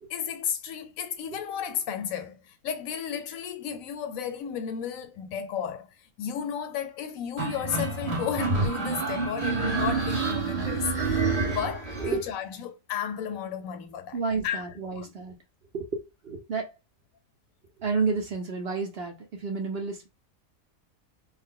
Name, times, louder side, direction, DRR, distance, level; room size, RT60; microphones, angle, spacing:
voice 1, 0.1-5.9 6.2-14.2 14.4-14.6 14.9-15.1, left 8 dB, 80° left, 1.0 m, -33 dB
sound 1, 7.4-12.2, right 4 dB, 30° right, 1.1 m, -28 dB
voice 2, 14.1-15.4 15.7-16.7 17.8-20.1, right 4 dB, 50° right, 0.9 m, -30 dB
3.4 x 2.1 x 3.7 m
omnidirectional pair, 1.4 m